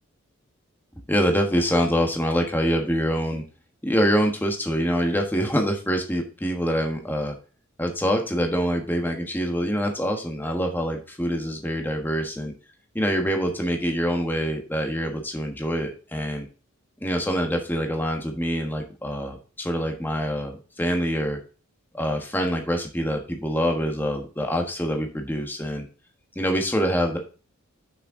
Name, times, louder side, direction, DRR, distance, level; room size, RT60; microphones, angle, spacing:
voice 1, 1.1-3.4 3.8-7.3 7.8-12.5 12.9-16.4 17.0-21.4 21.9-25.9 26.3-27.2, equal, 10° left, 3 dB, 1.3 m, -25 dB
6.5 x 6.3 x 4.9 m, 0.37 s
head